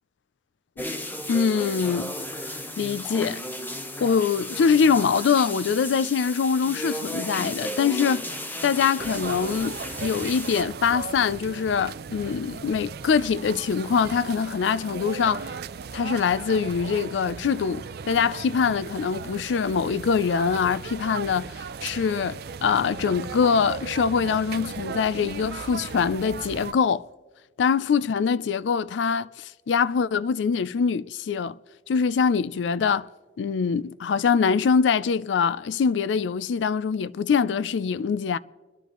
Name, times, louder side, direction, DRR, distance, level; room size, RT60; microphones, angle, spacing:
sound 1, 0.8-10.6, left 1 dB, 10° left, 0.9 m, -34 dB
voice 1, 1.3-2.1 2.4-3.4 4.0-8.3 8.6-15.6 15.9-21.5 21.8-27.1 27.6-29.3 29.7-31.6 31.9-33.1 33.4-38.4, left 6 dB, 90° left, 0.4 m, -24 dB
sound 2, 9.0-26.7, right 5 dB, 60° right, 0.5 m, -37 dB
25.5 x 10.5 x 3.0 m
head